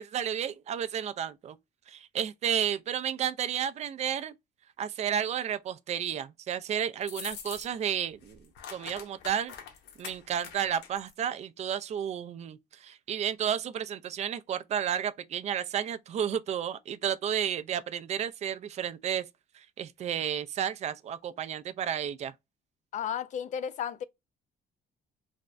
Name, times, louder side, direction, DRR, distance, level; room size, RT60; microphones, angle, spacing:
voice 1, 0.0-1.6 1.9-4.3 4.8-8.4 8.7-9.5 10.0-19.2 19.5-22.3, right 9 dB, 40° right, 0.4 m, -32 dB
sound 1, 7.0-7.9 8.2-11.1, left 7 dB, 80° left, 0.7 m, -44 dB
voice 2, 22.9-24.0, left 8 dB, 45° left, 0.4 m, -33 dB
3.3 x 2.0 x 2.5 m
cardioid pair, 110°, 17 cm